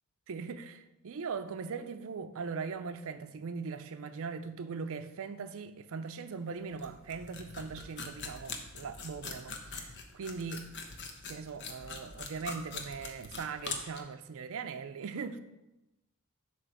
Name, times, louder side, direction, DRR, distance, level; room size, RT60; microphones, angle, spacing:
voice 1, 0.3-10.7 11.3-15.4, right 5 dB, 65° right, 0.5 m, -40 dB
sound 1, 6.3-6.4 6.7-14.0, left 4 dB, 55° left, 0.8 m, -43 dB
7.5 x 3.0 x 6.0 m
head